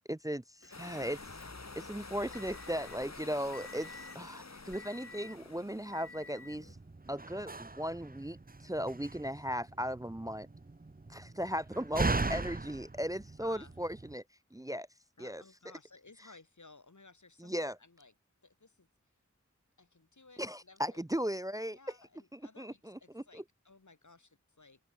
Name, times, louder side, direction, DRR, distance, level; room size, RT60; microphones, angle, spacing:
voice 1, 0.1-1.2 1.8-6.8 7.1-10.5 11.1-14.2 14.5-14.9 15.2-15.4 17.4-17.8 20.4-21.8 22.3-23.4, equal, 10° right, 0.7 m, -37 dB
Motor vehicle (road) / Engine, 0.6-6.7, left 3 dB, 50° left, 2.2 m, -52 dB
voice 2, 0.7-1.2 13.4-13.7 15.2-18.1 18.4-18.9 19.8-21.0 21.7-24.8, left 3 dB, 80° left, 7.8 m, -58 dB
sound 1, 0.7-6.5, left 3 dB, 65° left, 2.9 m, -49 dB
Slam, 6.5-14.1, right 3 dB, 30° right, 1.0 m, -39 dB
open air
wide cardioid pair, 55°, 29 cm